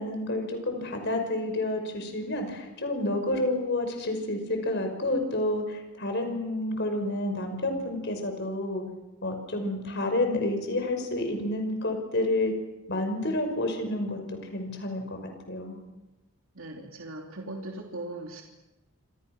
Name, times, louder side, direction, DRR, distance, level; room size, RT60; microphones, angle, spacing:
voice 1, 0.0-8.8 9.2-12.5 12.9-15.2 15.5-15.8, left 1 dB, 55° left, 5 dB, 5.6 m, -29 dB
voice 2, 16.5-18.4, right 2 dB, 70° right, 1 dB, 3.1 m, -39 dB
28.5 x 26.5 x 6.2 m, 1.0 s
head